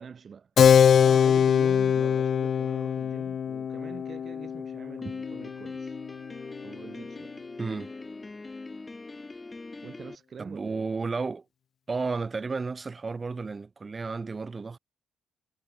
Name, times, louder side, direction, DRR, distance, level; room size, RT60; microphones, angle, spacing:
voice 1, 0.0-6.0 6.6-7.3 9.8-10.9, right 6 dB, 45° right, 4.5 m, -45 dB
Keyboard (musical), 0.6-6.7, left 8 dB, 55° left, 0.3 m, -23 dB
Piano, 5.0-10.2, left 3 dB, 20° left, 1.5 m, -42 dB
voice 2, 7.6-7.9 10.4-11.4 11.9-14.8, right 4 dB, 30° right, 0.4 m, -32 dB
cardioid pair, 90°, 0 cm